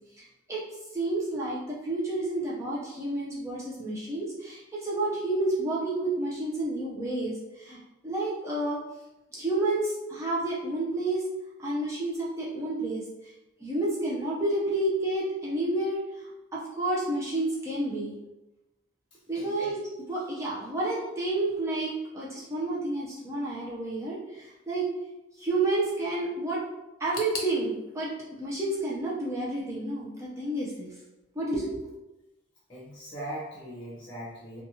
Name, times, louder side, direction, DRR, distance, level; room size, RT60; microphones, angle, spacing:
voice 1, 0.2-0.6 0.9-7.8 8.0-8.8 9.3-11.2 11.6-13.3 13.6-16.3 16.5-18.2 19.3-24.9 25.4-26.6 27.0-30.9 31.4-31.9, right 2 dB, 15° right, -6 dB, 0.4 m, -30 dB
voice 2, 19.1-19.7 32.7-34.6, right 1 dB, 25° left, -7 dB, 0.8 m, -40 dB
sound 1, 27.1-30.0 30.3-31.1 31.4-31.5 32.3-32.4, left 3 dB, 85° left, 0.6 m, -43 dB
2.7 x 2.3 x 2.8 m, 0.96 s
head